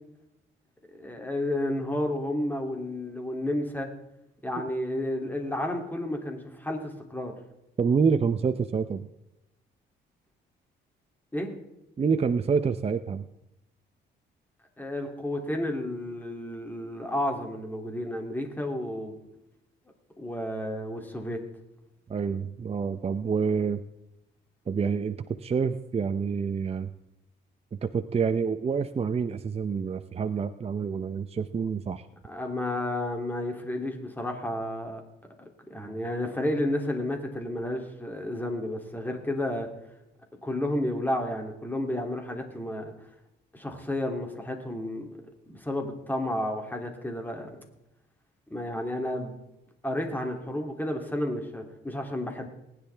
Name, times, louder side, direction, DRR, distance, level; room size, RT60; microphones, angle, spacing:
voice 1, 0.9-3.9 4.4-7.3 11.3-11.5 14.8-19.2 20.2-21.4 32.2-35.0 35.7-39.7 40.4-42.9 43.5-45.1 45.5-47.6 48.5-49.3 49.8-52.5, left 1 dB, 10° left, 3 dB, 2.8 m, -31 dB
voice 2, 7.8-9.1 12.0-13.3 22.1-23.8 24.7-26.9 27.7-32.0, right 5 dB, 30° right, 9 dB, 0.7 m, -27 dB
19.0 x 10.0 x 3.4 m, 0.87 s
cardioid pair, 90°, 20 cm